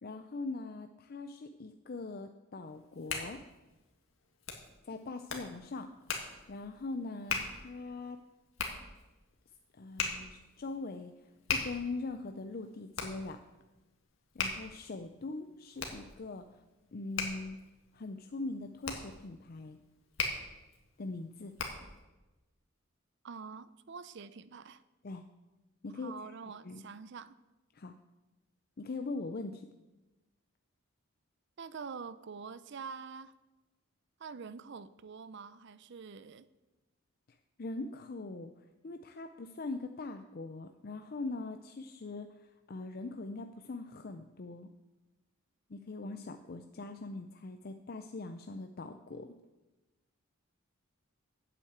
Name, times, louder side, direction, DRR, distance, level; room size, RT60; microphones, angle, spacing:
voice 1, 0.0-3.4 4.8-5.9 6.5-8.2 9.8-11.1 11.5-13.4 14.3-16.5 16.9-17.6 17.9-19.8 21.0-21.5 25.0-25.2 25.8-26.1 26.6-26.8 27.7-27.9 28.8-29.7 37.6-44.7 45.7-49.4, left 3 dB, 45° left, 7 dB, 0.5 m, -41 dB
Hands, 2.7-22.0, left 5 dB, 70° left, 1.9 m, -41 dB
voice 2, 23.2-24.8 25.9-27.3 31.6-33.3 34.2-36.4, right 5 dB, 55° right, 15 dB, 0.5 m, -46 dB
8.5 x 8.3 x 7.9 m, 1.1 s
head